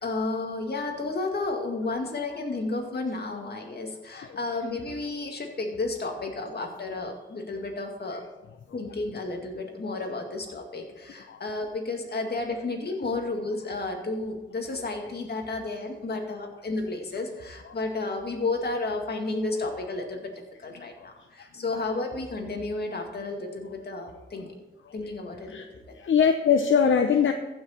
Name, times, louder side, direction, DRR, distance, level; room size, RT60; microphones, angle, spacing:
voice 1, 0.0-8.2 8.7-20.3 20.6-24.5 24.9-25.9, left 3 dB, 55° left, 2 dB, 2.2 m, -32 dB
voice 2, 25.9-27.3, left 7 dB, 75° left, 6 dB, 0.7 m, -22 dB
15.0 x 6.3 x 4.4 m, 1.1 s
cardioid pair, 75°, 20 cm